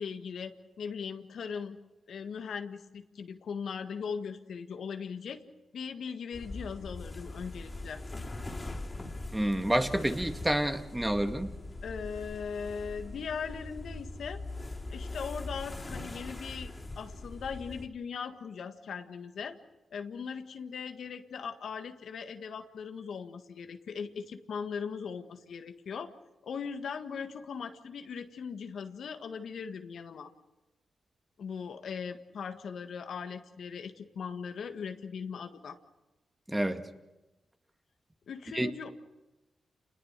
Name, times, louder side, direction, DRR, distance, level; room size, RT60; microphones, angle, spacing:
voice 1, 0.0-1.8 2.1-5.4 5.7-8.0 11.8-14.4 14.9-19.6 19.9-26.1 26.4-30.3 31.4-35.8 38.3-38.9, left 6 dB, 75° left, 7 dB, 1.7 m, -39 dB
sound 1, 6.3-17.9, left 2 dB, 30° left, 3.5 m, -41 dB
voice 2, 9.3-11.5 36.5-36.8 38.5-38.7, right 1 dB, 15° right, 6 dB, 2.2 m, -29 dB
28.5 x 20.5 x 6.7 m, 1.0 s
supercardioid pair, 45°, 0 cm